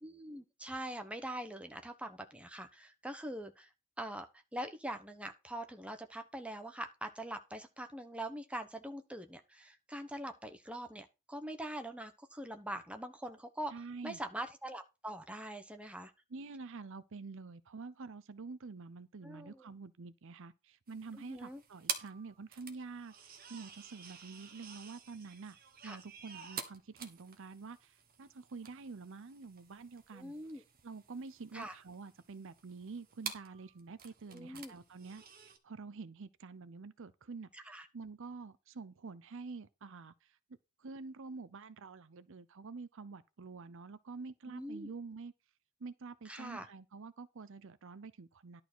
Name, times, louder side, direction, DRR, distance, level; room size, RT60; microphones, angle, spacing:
voice 1, 0.0-3.7 4.0-4.3 4.5-13.7 14.0-16.1 19.2-19.7 21.1-21.6 25.8-26.0 30.1-30.6 31.5-31.7 34.3-34.7 37.5-37.9 44.5-44.9 46.2-46.7, right 1 dB, 5° right, 1.0 m, -43 dB
voice 2, 13.7-14.2 16.3-25.6 25.8-40.4 40.8-45.3 45.8-48.6, right 4 dB, 60° right, 0.6 m, -48 dB
sound 1, 20.9-35.6, right 7 dB, 40° right, 1.4 m, -48 dB
11.5 x 4.7 x 6.1 m
head